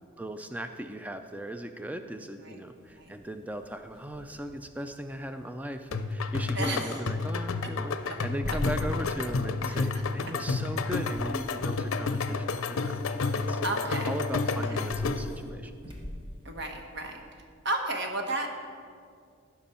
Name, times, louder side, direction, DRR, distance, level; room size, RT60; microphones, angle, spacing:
voice 1, 0.2-13.8 14.0-15.7, right 1 dB, 5° right, 8 dB, 0.3 m, -38 dB
sound 1, 2.7-17.4, equal, 25° right, 1.2 m, -46 dB
sound 2, 5.9-15.4, left 4 dB, 85° left, 0.5 m, -30 dB
voice 2, 6.5-7.0 13.6-14.1 16.4-17.2 17.6-18.6, right 2 dB, 55° right, 3 dB, 1.1 m, -32 dB
15.5 x 6.0 x 4.3 m, 2.2 s
head